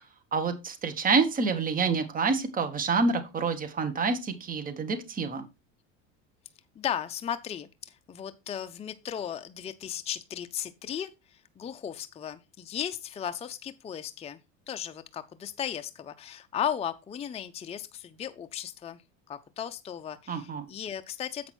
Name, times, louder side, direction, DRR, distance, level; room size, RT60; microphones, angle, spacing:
voice 1, 0.3-5.5 20.3-20.7, right 4 dB, 25° right, 1.3 m, -27 dB
voice 2, 6.8-14.4 14.7-19.0 19.3-21.5, left 9 dB, 20° left, 0.5 m, -36 dB
7.8 x 5.9 x 4.4 m
supercardioid pair, 115°, 34 cm